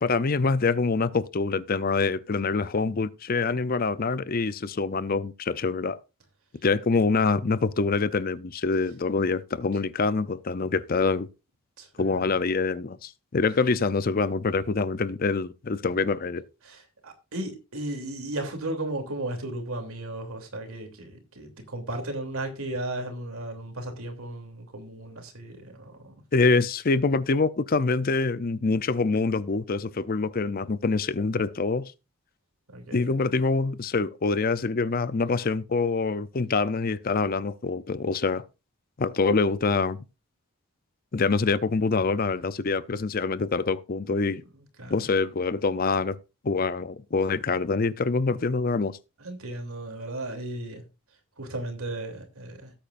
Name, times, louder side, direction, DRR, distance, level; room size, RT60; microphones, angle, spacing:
voice 1, 0.0-6.0 6.6-11.3 12.0-16.4 26.3-31.9 32.9-38.4 39.0-40.0 41.1-44.4 44.9-46.2 46.4-49.0, left 4 dB, 40° left, 0.5 m, -25 dB
voice 2, 11.8-12.3 16.6-26.1 32.7-33.1 44.8-45.0 49.2-50.8 51.4-52.7, right 1 dB, 75° right, 3.0 m, -35 dB
18.0 x 8.7 x 2.5 m
head